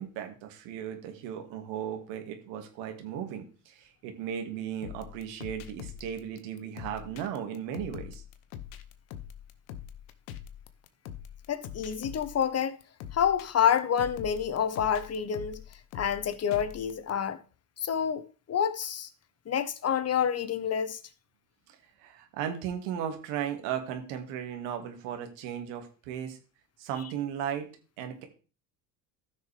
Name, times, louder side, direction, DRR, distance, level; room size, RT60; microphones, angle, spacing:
voice 1, 0.0-8.2 22.0-26.4 26.8-27.7 28.0-28.2, right 9 dB, 75° right, 2.2 m, -36 dB
sound 1, 4.8-17.1, left 10 dB, 80° left, 1.1 m, -44 dB
voice 2, 11.5-12.8 13.1-15.6 15.9-17.4 17.8-19.1 19.5-21.0, left 8 dB, 35° left, 1.2 m, -28 dB
14.5 x 6.6 x 3.4 m
supercardioid pair, 85°, 42 cm